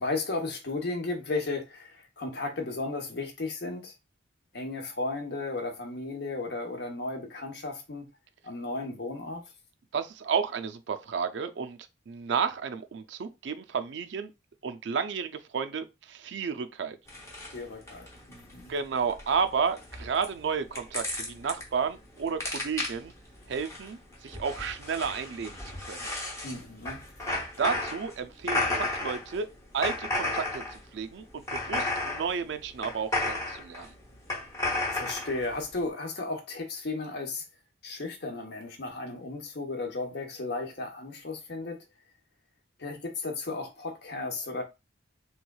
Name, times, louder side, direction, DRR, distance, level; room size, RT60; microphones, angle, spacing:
voice 1, 0.0-3.9 4.5-8.1 8.4-9.4 17.5-18.7 26.4-27.0 34.9-37.4 37.8-41.8 42.8-44.6, left 3 dB, 55° left, 0.9 m, -34 dB
voice 2, 9.9-11.8 12.1-14.3 14.6-17.0 18.7-23.1 23.5-26.1 27.6-33.9, right 6 dB, 65° right, 0.4 m, -32 dB
sound 1, 17.1-35.8, left 2 dB, 15° left, 0.8 m, -34 dB
3.5 x 3.1 x 2.3 m
head